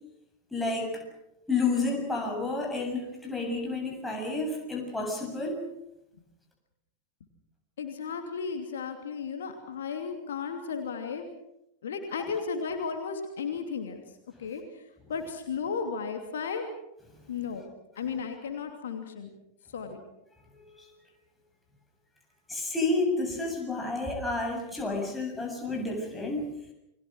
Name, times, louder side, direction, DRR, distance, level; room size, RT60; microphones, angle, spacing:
voice 1, 0.5-1.0 1.5-5.6 20.8-20.9 22.5-26.5, left 3 dB, 5° left, 1 dB, 7.5 m, -30 dB
voice 2, 7.8-11.3 11.8-14.0 14.4-16.6 17.3-17.6 18.0-19.3 19.7-20.0, left 5 dB, 65° left, 5 dB, 2.9 m, -34 dB
29.5 x 23.0 x 6.2 m, 0.84 s
figure-of-eight pair, 90°, 0 cm